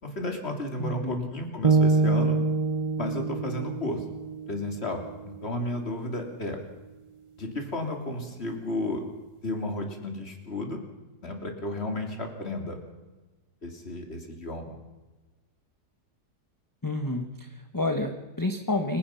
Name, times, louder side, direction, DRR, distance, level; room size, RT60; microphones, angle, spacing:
voice 1, 0.0-2.4 3.0-4.0 4.5-6.6 7.4-9.0 9.4-10.8 11.2-12.8 13.6-14.7, left 1 dB, 40° left, 4 dB, 3.2 m, -33 dB
voice 2, 0.8-1.3 16.8-19.0, left 2 dB, 15° left, 5 dB, 1.2 m, -29 dB
sound 1, 1.6-5.8, right 3 dB, 35° right, 0.5 m, -26 dB
29.0 x 16.5 x 5.8 m, 1.2 s
omnidirectional pair, 1.7 m